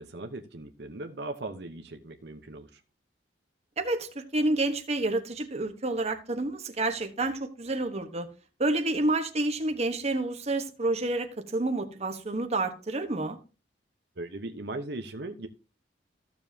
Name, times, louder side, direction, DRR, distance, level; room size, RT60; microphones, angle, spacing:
voice 1, 0.0-2.8 14.2-15.5, right 2 dB, 65° right, 1.0 m, -38 dB
voice 2, 3.8-8.3 8.6-13.4, right 2 dB, 40° right, 1.3 m, -29 dB
14.5 x 7.2 x 2.8 m
head